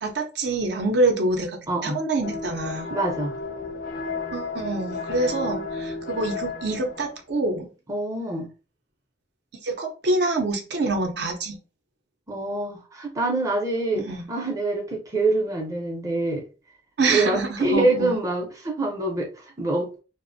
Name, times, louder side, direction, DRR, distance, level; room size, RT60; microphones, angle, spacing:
voice 1, 0.0-2.9 4.3-7.7 9.6-11.6 14.0-14.2 17.0-18.1, right 2 dB, 65° right, 0.5 m, -26 dB
voice 2, 1.7-2.0 2.9-3.3 7.9-8.5 12.3-16.4 17.1-19.9, right 2 dB, 20° right, 0.5 m, -25 dB
sound 1, 2.2-7.2, left 4 dB, 50° left, 0.4 m, -33 dB
2.4 x 2.0 x 2.5 m
head